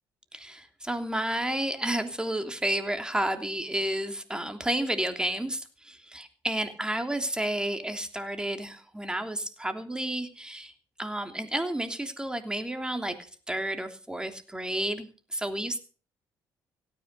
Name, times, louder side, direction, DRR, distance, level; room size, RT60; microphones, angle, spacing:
voice 1, 0.3-10.7 11.0-15.8, right 1 dB, 10° right, 7 dB, 3.0 m, -31 dB
17.0 x 9.7 x 6.8 m, 0.39 s
supercardioid pair, 70°, 8 cm